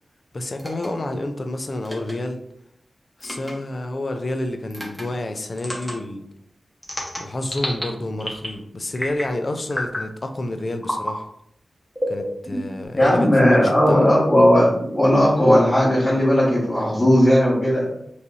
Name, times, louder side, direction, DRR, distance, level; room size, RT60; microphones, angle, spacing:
voice 1, 0.3-2.4 3.2-6.2 7.2-11.3 12.1-14.1, left 1 dB, 45° left, 6 dB, 0.6 m, -29 dB
sound 1, 0.6-0.9 1.8-2.1 3.2-3.5 4.7-5.0 5.6-5.9 6.8-7.8 8.2-8.6 9.0-9.3 9.7-10.1 10.8-11.1 12.0-12.9, equal, 10° left, 1.4 m, -29 dB
voice 2, 12.9-17.9, equal, 30° left, -9 dB, 1.8 m, -16 dB
5.4 x 3.2 x 2.7 m, 0.73 s
wide cardioid pair, 70°, 0 cm